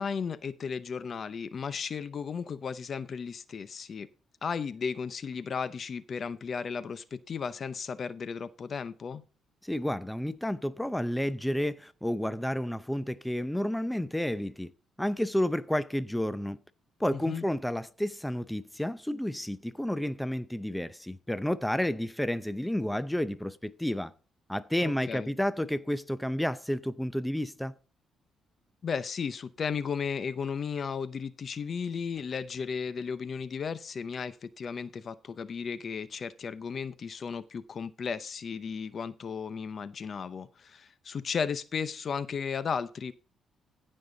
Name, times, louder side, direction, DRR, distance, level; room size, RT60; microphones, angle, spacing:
voice 1, 0.0-4.1 4.4-9.2 17.1-17.5 24.8-25.3 28.8-43.1, left 6 dB, 50° left, 0.6 m, -35 dB
voice 2, 9.6-14.7 15.0-16.6 17.0-24.1 24.5-27.7, left 1 dB, 5° left, 0.6 m, -31 dB
15.0 x 5.5 x 3.9 m
cardioid pair, 90°, 0 cm